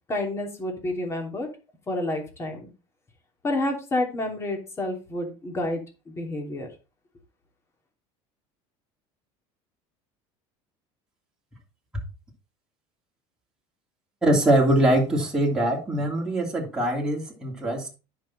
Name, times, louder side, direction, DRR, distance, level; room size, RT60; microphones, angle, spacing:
voice 1, 0.1-1.5 1.9-2.7 3.4-5.8 6.1-6.7, left 1 dB, 20° left, 1 dB, 3.0 m, -29 dB
voice 2, 14.2-17.9, right 1 dB, 5° right, -3 dB, 2.8 m, -23 dB
10.0 x 6.0 x 4.1 m, 0.30 s
cardioid pair, 140°, 13 cm